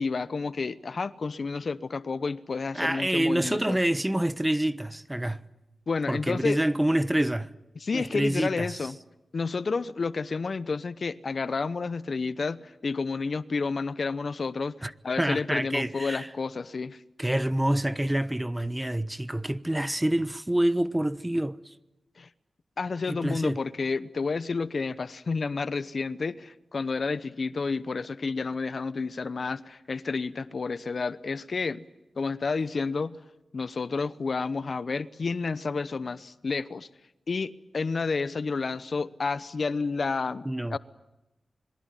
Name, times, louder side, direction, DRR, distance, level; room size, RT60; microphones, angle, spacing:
voice 1, 0.0-3.8 5.9-6.6 7.8-9.0 9.3-17.0 22.2-22.3 22.8-31.8 32.2-33.2 33.5-36.9 37.3-40.8, left 4 dB, 60° left, 0.9 m, -30 dB
voice 2, 2.7-5.4 6.1-7.5 7.9-8.8 14.8-14.9 15.2-16.3 17.2-21.6 23.1-23.6 40.4-40.8, right 1 dB, 15° right, 1.0 m, -27 dB
26.5 x 22.0 x 9.2 m
cardioid pair, 55°, 0 cm